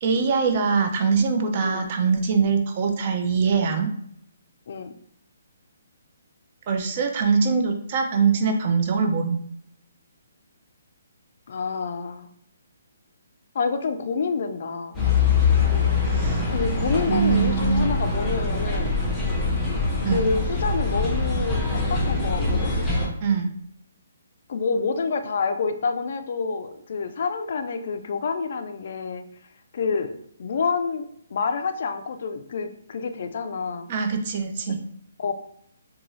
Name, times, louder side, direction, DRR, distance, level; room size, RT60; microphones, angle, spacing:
voice 1, 0.0-3.9 6.7-9.4 16.0-16.5 17.1-17.9 20.0-20.3 23.2-23.5 33.9-34.8, right 5 dB, 35° right, 4 dB, 0.4 m, -23 dB
voice 2, 11.5-12.3 13.5-15.0 16.5-18.9 20.1-22.7 24.5-29.2 29.7-33.9 35.2-35.3, left 5 dB, 55° left, 8 dB, 0.3 m, -28 dB
sound 1, 14.9-23.1, left 4 dB, 5° left, 0.6 m, -23 dB
2.5 x 2.3 x 3.0 m, 0.70 s
hypercardioid pair, 160°, 0 cm